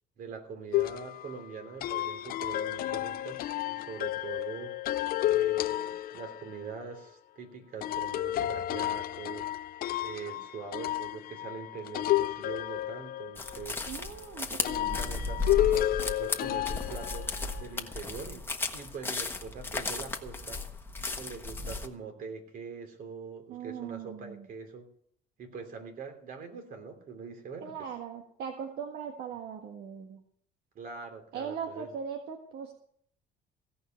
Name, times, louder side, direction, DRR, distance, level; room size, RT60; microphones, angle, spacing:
voice 1, 0.2-4.7 5.3-9.5 10.0-13.8 14.6-20.6 21.2-24.9 25.4-27.9 30.7-31.9, right 5 dB, 55° right, 5 dB, 3.1 m, -43 dB
sound 1, 0.7-6.6 7.8-13.9 14.6-17.6, left 14 dB, 60° left, 0.5 m, -31 dB
sound 2, 13.4-21.9, left 3 dB, 15° left, 1.3 m, -35 dB
voice 2, 13.9-15.0 23.5-24.5 27.6-30.2 31.3-32.7, right 7 dB, 75° right, 3 dB, 1.6 m, -39 dB
16.5 x 5.5 x 9.0 m, 0.63 s
cardioid pair, 110°, 17 cm